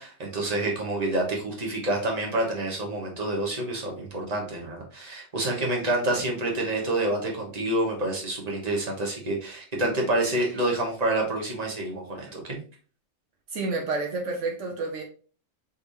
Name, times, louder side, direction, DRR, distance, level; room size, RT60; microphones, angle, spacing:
voice 1, 0.0-12.6, right 1 dB, 30° right, -1 dB, 1.4 m, -28 dB
voice 2, 13.5-15.0, right 3 dB, 75° right, 1 dB, 1.2 m, -29 dB
5.4 x 3.4 x 2.7 m, 0.39 s
omnidirectional pair, 1.3 m